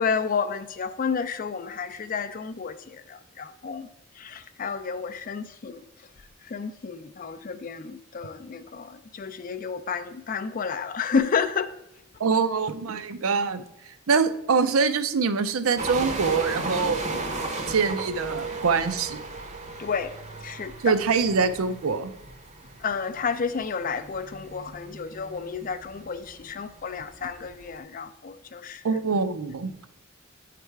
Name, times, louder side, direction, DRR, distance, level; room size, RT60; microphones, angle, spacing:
voice 1, 0.0-3.9 4.2-5.8 6.5-11.7 19.8-20.1 20.4-20.7 22.8-28.8, left 5 dB, 40° left, 0.4 m, -31 dB
voice 2, 12.2-13.6 14.1-17.0 17.7-19.2 20.8-22.1 28.8-29.7, right 5 dB, 75° right, 0.5 m, -24 dB
sound 1, 15.8-27.8, right 3 dB, 30° right, 0.7 m, -36 dB
8.9 x 3.3 x 4.5 m
head